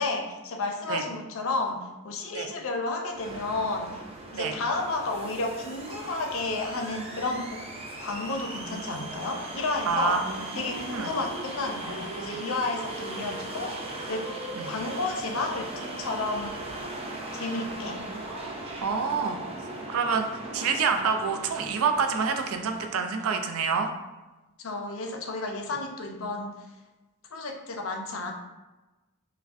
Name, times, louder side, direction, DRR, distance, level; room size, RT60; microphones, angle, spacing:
voice 1, 0.0-3.9 4.3-7.6 8.0-10.2 10.5-14.4 14.7-16.6 17.3-18.0 24.6-26.6 27.3-28.3, left 3 dB, 70° left, 2 dB, 0.5 m, -32 dB
sound 1, 3.1-23.0, right 2 dB, 30° right, 0.4 m, -38 dB
voice 2, 9.9-10.4 10.7-11.1 14.6-14.7 17.9-18.5 18.8-19.4 19.9-20.3 20.5-23.9, right 5 dB, 85° right, 5 dB, 0.4 m, -27 dB
4.8 x 2.1 x 2.5 m, 1.1 s
head